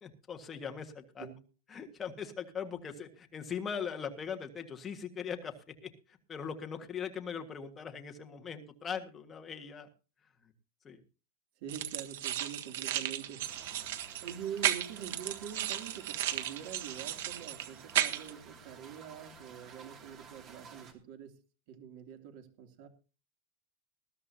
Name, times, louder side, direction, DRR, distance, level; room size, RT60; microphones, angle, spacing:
voice 1, 0.0-1.3 1.7-5.5 5.8-9.9 10.4-10.5 10.8-11.0, left 7 dB, 15° left, 4 dB, 1.7 m, -40 dB
voice 2, 11.6-13.8 14.2-21.4 21.7-22.9, right 9 dB, 50° right, 5 dB, 2.8 m, -45 dB
sound 1, 11.7-18.3, right 12 dB, 65° right, 1.5 m, -35 dB
sound 2, 13.4-20.9, right 6 dB, 25° right, 2.5 m, -53 dB
20.0 x 13.5 x 2.8 m, 0.34 s
supercardioid pair, 170°, 0 cm